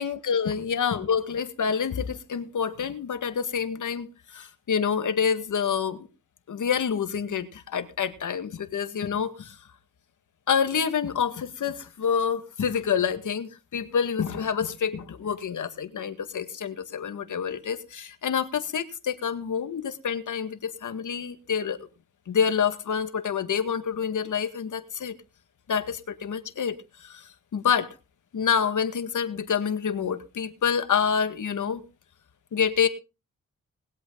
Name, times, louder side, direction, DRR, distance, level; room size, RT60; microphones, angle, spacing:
voice 1, 0.0-6.1 6.5-9.6 10.5-21.9 22.3-25.2 25.7-28.0 28.3-31.8 32.5-32.9, left 7 dB, 70° left, 1.9 m, -27 dB
20.5 x 8.1 x 3.9 m
cardioid pair, 55°, 32 cm